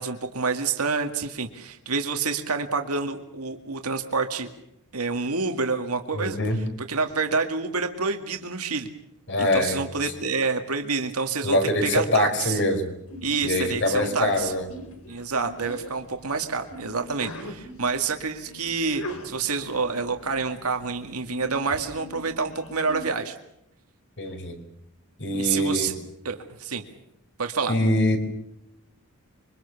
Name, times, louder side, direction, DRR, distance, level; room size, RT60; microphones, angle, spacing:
voice 1, 0.0-4.5 4.9-6.4 6.9-8.9 9.4-12.6 13.2-14.5 15.1-23.4 25.3-25.9 26.2-26.8 27.4-27.7, right 4 dB, 90° right, 5 dB, 2.1 m, -28 dB
voice 2, 6.1-6.6 9.3-9.8 11.4-12.9 13.4-14.7 24.2-24.6 25.2-26.0 27.7-28.2, left 1 dB, 55° left, 6 dB, 5.0 m, -24 dB
Sneeze, 13.1-23.1, equal, 70° left, 3.8 m, -41 dB
26.5 x 24.0 x 7.1 m, 0.81 s
head